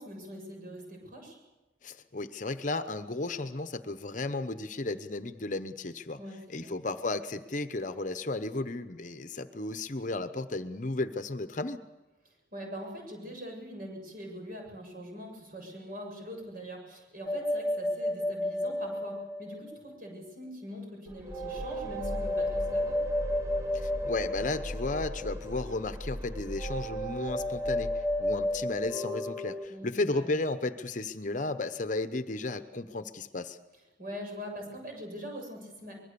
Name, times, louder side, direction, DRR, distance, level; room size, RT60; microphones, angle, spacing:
voice 1, 0.0-1.4 6.2-6.7 12.5-23.0 29.7-30.3 34.0-35.9, equal, 50° right, 2 dB, 7.1 m, -43 dB
voice 2, 1.8-6.2 6.5-11.8 23.7-27.9 28.2-33.6, left 2 dB, 45° left, 10 dB, 0.9 m, -34 dB
sound 1, 17.3-19.9 21.3-25.2 26.6-29.7, left 1 dB, ahead, 1.3 m, -32 dB
sound 2, 21.1-28.9, left 1 dB, 15° right, 1.4 m, -39 dB
24.5 x 21.5 x 6.9 m, 1.0 s
head